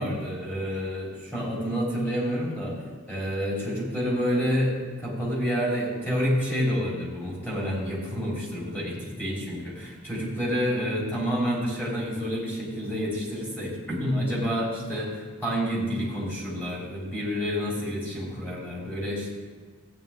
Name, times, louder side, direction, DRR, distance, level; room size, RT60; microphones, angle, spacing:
voice 1, 0.0-2.8 3.1-19.3, equal, 10° left, -5 dB, 3.4 m, -29 dB
14.0 x 9.3 x 3.5 m, 1.5 s
head